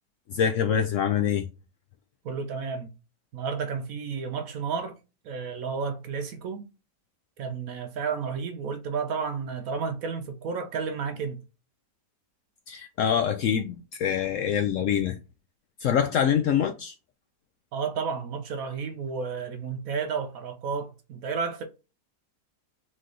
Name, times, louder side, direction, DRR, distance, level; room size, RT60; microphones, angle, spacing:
voice 1, 0.3-1.5 12.7-15.2 15.8-16.9, left 8 dB, 75° left, 0.7 m, -25 dB
voice 2, 2.2-2.9 3.3-5.0 5.2-6.7 7.4-11.4 17.7-21.6, right 5 dB, 65° right, 0.9 m, -32 dB
4.1 x 3.2 x 3.8 m
omnidirectional pair, 1.8 m